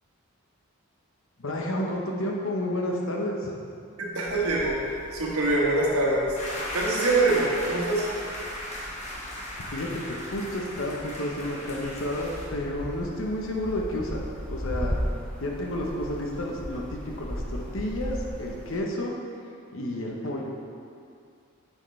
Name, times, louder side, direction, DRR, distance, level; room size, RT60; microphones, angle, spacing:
voice 1, 1.4-3.5 9.7-14.2 14.5-15.0 15.4-19.1 19.7-20.6, left 1 dB, 65° left, -1 dB, 0.9 m, -31 dB
voice 2, 4.0-4.8 5.1-6.3 6.7-8.1, right 2 dB, 85° right, -3 dB, 1.5 m, -24 dB
sound 1, 4.3-18.8, equal, 5° left, 0.5 m, -38 dB
sound 2, 6.4-12.5, left 1 dB, 30° left, 1.2 m, -36 dB
9.0 x 6.4 x 3.3 m, 2.4 s
head